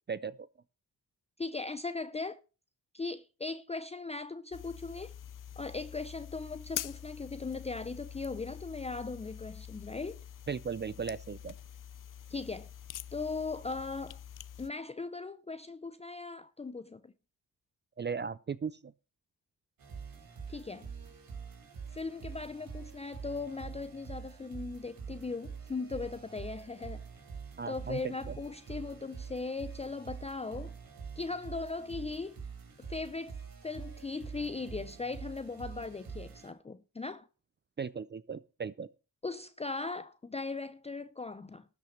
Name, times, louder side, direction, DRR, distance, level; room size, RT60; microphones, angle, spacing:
voice 1, 0.1-0.5 10.5-11.5 18.0-18.9 27.6-28.3 37.8-38.9, right 6 dB, 30° right, 0.5 m, -37 dB
voice 2, 1.4-2.4 2.9-5.1 5.6-10.2 12.3-12.7 13.1-14.2 14.6-17.1 20.5-20.9 21.9-27.1 27.7-30.8 31.2-32.4 32.9-33.4 33.6-37.3 39.2-41.7, left 3 dB, 20° left, 0.6 m, -38 dB
sound 1, 4.5-14.7, left 10 dB, 65° left, 0.6 m, -45 dB
sound 2, 19.8-36.5, right 6 dB, 75° right, 4.0 m, -45 dB
13.0 x 6.1 x 6.6 m
cardioid pair, 85°, 35 cm